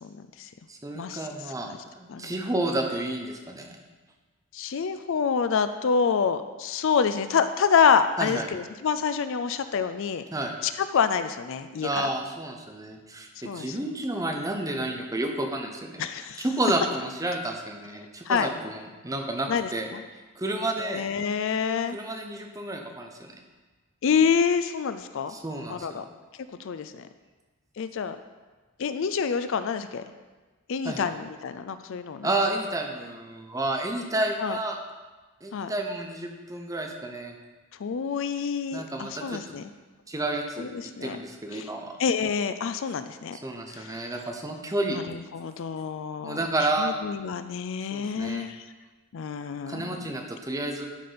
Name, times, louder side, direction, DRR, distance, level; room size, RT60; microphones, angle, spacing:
voice 1, 0.0-0.5 0.9-1.3 1.6-1.8 2.1-2.3 4.5-10.2 10.6-12.1 13.4-13.8 16.0-16.5 18.3-18.5 19.5-20.0 20.8-22.0 24.0-25.4 25.7-26.1 26.6-27.1 27.8-28.2 28.8-30.0 30.7-32.3 34.4-34.6 35.5-35.7 37.8-39.6 40.6-41.2 41.5-41.7 42.0-43.4 43.7-44.0 44.9-46.5 46.8-48.7 49.1-50.0, left 6 dB, 60° left, 11 dB, 0.4 m, -27 dB
voice 2, 0.7-3.8 8.2-8.5 10.3-10.5 11.8-16.0 16.4-19.9 20.1-21.0 21.9-23.3 25.3-26.0 30.8-31.0 32.2-34.8 35.4-37.3 38.7-39.4 40.1-41.9 43.4-45.0 46.2-46.9 47.9-48.4 49.7-50.9, right 2 dB, 15° right, 3 dB, 0.8 m, -31 dB
11.5 x 4.3 x 5.1 m, 1.3 s
head